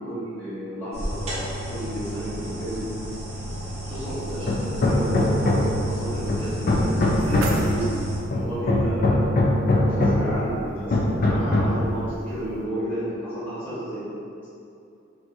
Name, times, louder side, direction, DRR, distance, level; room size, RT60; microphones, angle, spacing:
voice 1, 0.0-2.9 3.8-7.9 8.3-9.2 9.7-14.1, right 1 dB, 10° left, -15 dB, 1.2 m, -32 dB
sound 1, 0.9-8.2, equal, 30° right, 0.7 m, -32 dB
Hammer, 4.5-5.9 6.3-7.7 8.3-10.3 10.9-11.8, left 1 dB, 40° left, 0.3 m, -21 dB
sound 2, 6.7-8.7, right 3 dB, 70° right, 0.4 m, -37 dB
3.7 x 2.8 x 2.3 m, 2.6 s
head